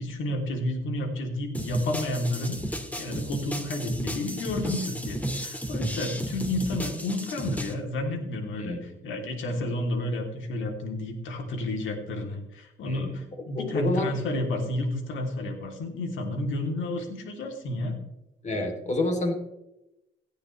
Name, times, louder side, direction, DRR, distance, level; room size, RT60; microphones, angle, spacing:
voice 1, 0.0-2.6 2.9-18.0, left 1 dB, 80° left, 3 dB, 3.0 m, -31 dB
sound 1, 1.5-7.7, right 1 dB, 5° left, 2.1 m, -33 dB
voice 2, 8.6-9.0 12.8-13.2 13.5-14.1 18.4-19.3, left 2 dB, 35° left, 3 dB, 3.1 m, -28 dB
17.0 x 11.5 x 3.2 m, 0.90 s
cardioid pair, 90°, 20 cm